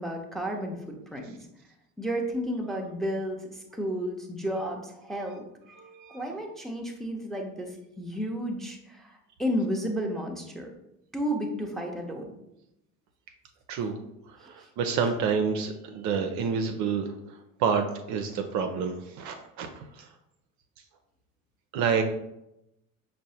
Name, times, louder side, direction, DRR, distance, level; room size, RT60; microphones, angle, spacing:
voice 1, 0.0-1.4 2.0-5.5 6.1-10.7 11.1-12.4 14.4-14.7, equal, ahead, 1 dB, 0.6 m, -32 dB
voice 2, 5.7-6.2 13.7-14.0 14.3-20.1 21.7-22.0, right 6 dB, 45° right, 5 dB, 0.5 m, -29 dB
6.2 x 2.1 x 2.7 m, 0.86 s
figure-of-eight pair, 60°, 41 cm